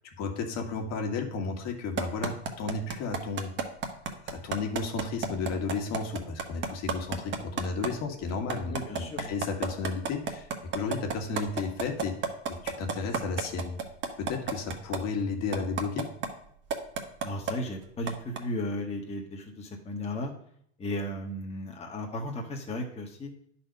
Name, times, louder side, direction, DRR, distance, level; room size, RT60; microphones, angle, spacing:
voice 1, 0.2-3.5 4.3-12.1 12.5-13.8 14.2-16.1, left 4 dB, 50° left, 3 dB, 1.9 m, -33 dB
sound 1, 2.0-7.9 8.3-15.0 15.5-16.3 16.7-17.5 18.1-18.4, right 6 dB, 35° right, 1.3 m, -30 dB
voice 2, 8.7-9.3 17.2-20.3 20.8-23.3, left 1 dB, 20° left, 0 dB, 1.4 m, -35 dB
10.0 x 4.3 x 5.3 m, 0.68 s
supercardioid pair, 110°, 33 cm